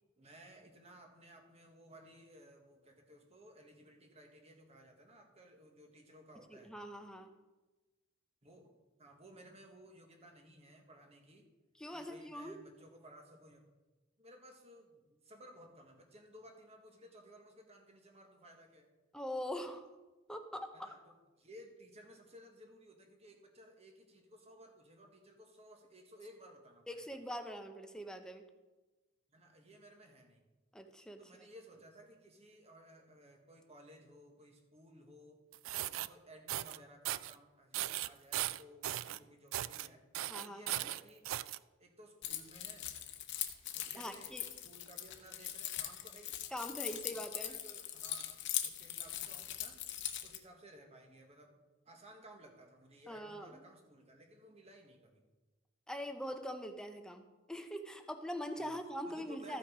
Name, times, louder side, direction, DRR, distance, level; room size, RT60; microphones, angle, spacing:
voice 1, 0.2-6.7 8.4-8.7 9.0-11.5 11.9-13.7 14.2-18.9 20.7-27.2 29.3-30.5 31.2-35.4 35.8-40.0 40.4-41.3 41.8-42.9 43.7-44.3 44.6-46.4 46.9-49.8 50.2-51.6 51.8-55.2 58.6-58.8 59.1-59.6, right 1 dB, 35° right, 3 dB, 1.4 m, -58 dB
voice 2, 6.5-7.3 11.8-12.6 19.1-19.9 20.3-20.9 26.9-28.4 30.7-31.2 40.3-40.8 43.9-44.5 46.5-47.6 53.1-53.6 55.9-59.6, equal, 5° left, 6 dB, 0.7 m, -43 dB
sound 1, 35.5-36.1 36.5-36.8 37.1-37.4 37.7-39.2 39.5-39.9 40.1-41.6, right 14 dB, 90° right, 0.3 m, -38 dB
Keys jangling, 42.2-50.4, left 11 dB, 65° left, 0.9 m, -41 dB
14.0 x 5.7 x 5.0 m, 1.2 s
head